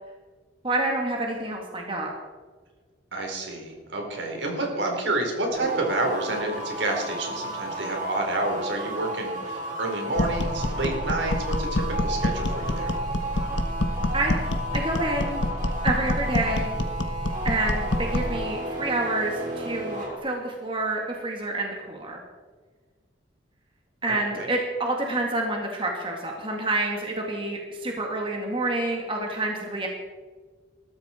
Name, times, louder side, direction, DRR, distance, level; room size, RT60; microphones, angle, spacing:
voice 1, 0.6-2.1 14.1-14.3 14.7-15.4 15.8-16.7 17.4-22.2 24.0-29.9, right 2 dB, 30° right, 0 dB, 2.3 m, -28 dB
voice 2, 3.1-12.9 24.1-24.5, right 2 dB, 70° right, 1 dB, 4.2 m, -29 dB
sound 1, 5.5-20.2, right 1 dB, 45° right, 4.9 m, -33 dB
sound 2, 10.2-18.4, left 1 dB, 70° left, 1.5 m, -27 dB
21.0 x 14.0 x 4.5 m, 1.4 s
head